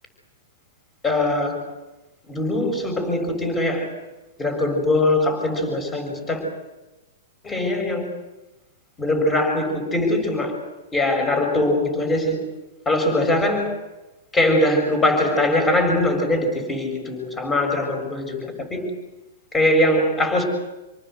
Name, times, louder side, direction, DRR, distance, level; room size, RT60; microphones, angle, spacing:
voice 1, 1.0-1.6 2.3-3.9 4.4-6.4 7.4-8.1 9.0-10.6 10.9-12.4 12.9-13.7 14.3-18.8 19.5-20.4, left 1 dB, 15° left, 5 dB, 7.0 m, -21 dB
28.0 x 19.0 x 8.2 m, 1.0 s
hypercardioid pair, 140°, 0 cm